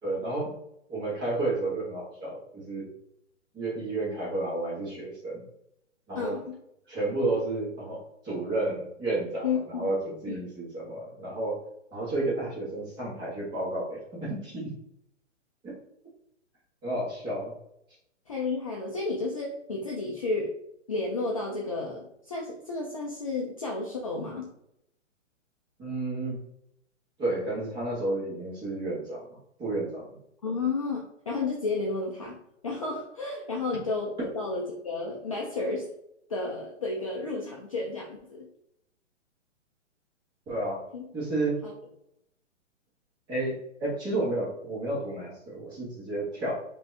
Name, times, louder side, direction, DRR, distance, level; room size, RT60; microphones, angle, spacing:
voice 1, 0.0-0.5 0.9-2.9 3.5-5.4 6.1-6.4 6.9-11.6 11.9-14.7 15.6-15.7 16.8-17.5 25.8-26.4 27.2-29.3 29.6-30.2 40.5-40.9 41.1-41.6 43.3-46.6, right 2 dB, 10° right, -6 dB, 1.3 m, -31 dB
voice 2, 6.1-6.6 9.4-9.9 10.3-10.4 18.3-20.5 20.9-24.5 30.4-32.4 32.6-35.9 36.3-38.5 40.9-41.0 41.6-41.7, left 3 dB, 30° left, -2 dB, 0.5 m, -32 dB
5.1 x 2.7 x 3.3 m, 0.78 s
hypercardioid pair, 160°, 38 cm